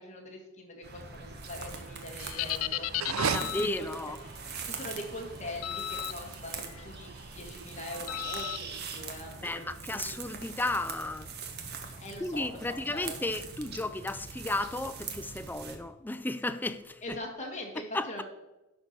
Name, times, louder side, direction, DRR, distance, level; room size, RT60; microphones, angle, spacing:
voice 1, 0.0-3.9 4.3-10.0 12.0-13.2 17.0-18.2, left 1 dB, 35° left, 2.0 m, -43 dB
sound 1, 0.8-15.8, right 5 dB, 50° right, 1.2 m, -42 dB
sound 2, 2.2-3.9 5.6-6.1 6.6-6.9 8.1-8.6, left 14 dB, 80° left, 0.4 m, -34 dB
sound 3, 2.9-9.0, right 7 dB, 80° right, 0.5 m, -38 dB
voice 2, 3.2-4.2 9.4-11.3 12.2-17.2 17.9-18.1, left 2 dB, 10° left, 0.4 m, -34 dB
10.5 x 4.5 x 6.7 m
head